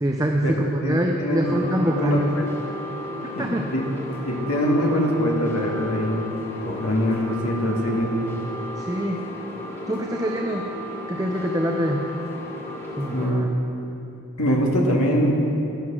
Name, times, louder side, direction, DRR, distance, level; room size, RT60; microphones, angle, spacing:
voice 1, 0.0-2.3 3.2-3.7 8.8-9.2 9.9-10.7 11.1-12.0 13.0-13.5, equal, 15° right, 1 dB, 0.6 m, -24 dB
voice 2, 0.8-1.6 1.9-2.5 3.4-3.9 4.2-6.3 6.6-8.1 13.1-13.5 14.4-15.4, equal, 75° left, -2 dB, 1.9 m, -23 dB
sound 1, 1.4-13.3, left 1 dB, 10° left, 1.4 m, -34 dB
12.5 x 11.0 x 6.1 m, 2.9 s
head